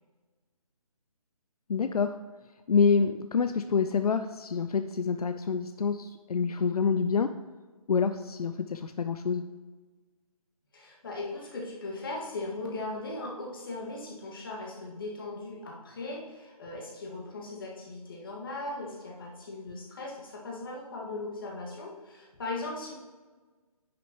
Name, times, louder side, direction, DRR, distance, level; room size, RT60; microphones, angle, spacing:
voice 1, 1.7-2.2 2.7-7.4 7.9-9.4, left 5 dB, 80° left, 9 dB, 0.5 m, -27 dB
voice 2, 10.7-22.9, left 2 dB, 35° left, -2 dB, 1.7 m, -38 dB
10.0 x 6.2 x 2.9 m, 1.3 s
hypercardioid pair, 170°, 19 cm